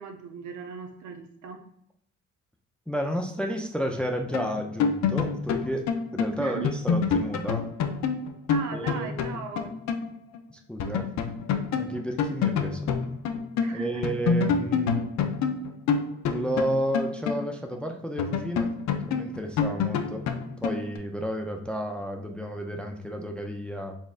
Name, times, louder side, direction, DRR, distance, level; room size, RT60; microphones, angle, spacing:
voice 1, 0.0-1.6 6.4-6.7 8.5-9.7 13.6-14.0, right 6 dB, 70° right, 5 dB, 0.7 m, -38 dB
voice 2, 2.9-5.9 6.1-7.7 8.7-9.1 10.5-11.1 11.7-12.9 13.7-15.1 16.2-18.8 19.1-20.3 20.6-24.0, equal, 5° left, 4 dB, 0.3 m, -31 dB
sound 1, 4.3-10.1 10.3-10.4 10.8-13.7 14.0-17.8 18.2-21.0, left 6 dB, 65° left, 0.5 m, -27 dB
4.2 x 3.5 x 2.4 m, 0.67 s
cardioid pair, 90°, 30 cm